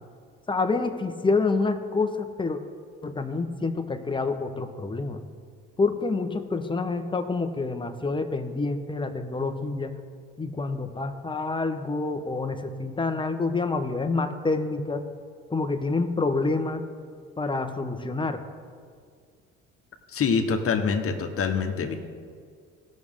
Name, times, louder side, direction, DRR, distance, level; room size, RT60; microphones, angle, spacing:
voice 1, 0.5-2.6 3.0-5.2 5.8-9.9 10.4-15.0 15.5-16.9 17.4-18.4, left 3 dB, 15° left, 6 dB, 1.0 m, -27 dB
voice 2, 20.1-22.0, left 5 dB, 45° left, 5 dB, 1.3 m, -25 dB
17.0 x 6.4 x 3.7 m, 2.1 s
supercardioid pair, 70°, 30 cm